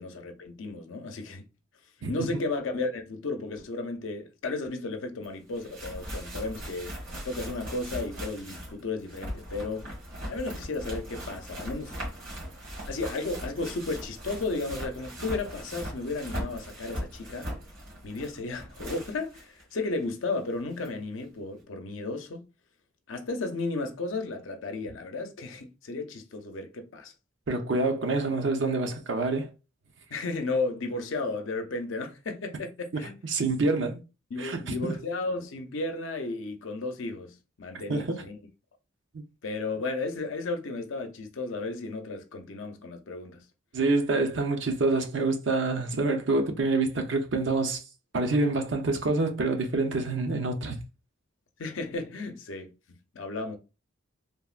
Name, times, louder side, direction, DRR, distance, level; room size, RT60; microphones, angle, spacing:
voice 1, 0.0-1.4 2.1-9.9 10.3-12.0 12.9-17.5 18.0-22.5 23.1-27.1 30.1-33.1 34.3-38.4 39.4-43.4 51.6-52.7 53.1-53.6, left 3 dB, 75° left, 0.6 m, -34 dB
voice 2, 2.0-2.4 27.5-29.5 33.2-34.0 34.4-34.9 37.9-38.3 43.7-47.8 48.1-50.8, right 3 dB, 65° right, 0.6 m, -27 dB
sound 1, 5.2-5.3 5.5-19.6 20.0-20.1 20.8-20.9, equal, 80° right, 1.7 m, -39 dB
3.4 x 2.1 x 2.4 m
head